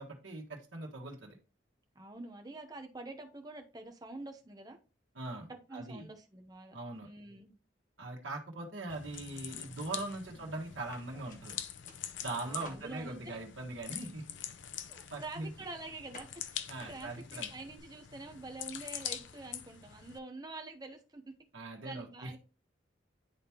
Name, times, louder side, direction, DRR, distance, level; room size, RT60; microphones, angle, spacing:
voice 1, 0.0-1.4 5.1-6.1 6.7-7.1 8.0-11.5 12.2-14.3 15.1-15.5 16.7-17.5 21.5-22.4, right 2 dB, 85° right, -1 dB, 1.4 m, -41 dB
voice 2, 1.9-4.8 5.5-6.8 7.0-7.5 10.3-10.6 12.4-13.4 14.9-21.3 21.6-22.4, right 2 dB, 20° right, 5 dB, 0.8 m, -47 dB
sound 1, 8.9-20.2, left 10 dB, 75° left, 0.6 m, -45 dB
sound 2, 10.0-13.4 13.9-17.8, left 2 dB, 45° left, 1.3 m, -59 dB
10.5 x 3.6 x 2.9 m, 0.34 s
head